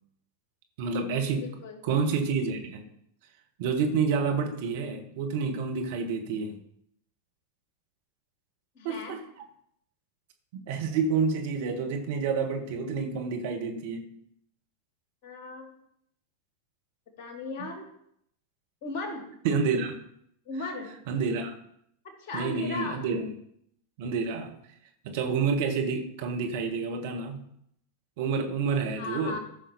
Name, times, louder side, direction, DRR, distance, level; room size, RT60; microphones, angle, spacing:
voice 1, 0.8-1.5 1.8-2.9 3.6-6.6 8.8-9.2 10.5-14.1 19.4-20.0 21.1-21.5 22.3-23.3 24.0-24.5 25.0-27.4 28.2-29.4, right 5 dB, 50° right, 4 dB, 1.6 m, -29 dB
voice 2, 1.4-1.8 8.8-9.2 15.2-15.7 17.2-17.9 18.8-19.3 20.5-20.9 22.0-23.1 29.0-29.4, left 3 dB, 45° left, 3 dB, 2.4 m, -36 dB
14.5 x 6.0 x 4.3 m, 0.73 s
figure-of-eight pair, 90°, 0 cm